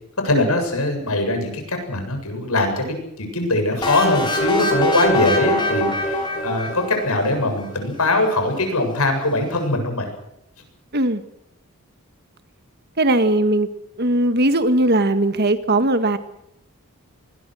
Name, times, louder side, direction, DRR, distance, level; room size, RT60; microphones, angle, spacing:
voice 1, 0.2-10.1, left 2 dB, 80° left, 5 dB, 7.7 m, -22 dB
sound 1, 3.8-7.6, left 1 dB, 20° left, 7.0 m, -23 dB
voice 2, 13.0-13.7 14.0-16.2, right 1 dB, 45° right, 10 dB, 1.7 m, -19 dB
25.5 x 21.5 x 6.4 m, 0.78 s
head